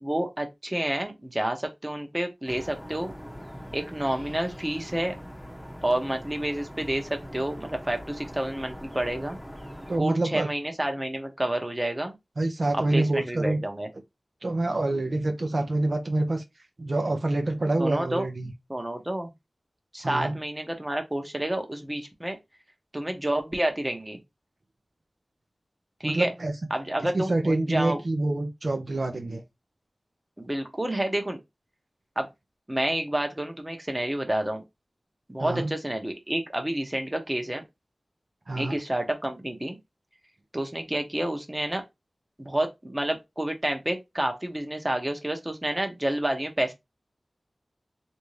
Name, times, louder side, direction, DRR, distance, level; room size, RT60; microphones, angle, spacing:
voice 1, 0.0-3.1 3.7-5.2 5.8-9.4 10.0-12.1 12.7-13.9 17.8-18.3 18.7-19.3 19.9-22.4 22.9-24.2 26.0-26.3 26.7-28.0 30.4-31.4 32.2-32.3 32.7-34.6 35.3-37.6 38.6-39.8 40.5-41.8 42.4-46.7, right 1 dB, 20° right, 0.9 m, -29 dB
sound 1, 2.5-10.0, equal, 5° left, 0.8 m, -42 dB
voice 2, 9.9-10.5 12.4-13.6 14.4-16.4 16.8-18.5 20.0-20.4 26.0-26.5 27.0-29.4 35.4-35.7 38.5-38.8, right 2 dB, 60° right, 0.6 m, -26 dB
3.3 x 2.7 x 3.2 m
wide cardioid pair, 55°, 0 cm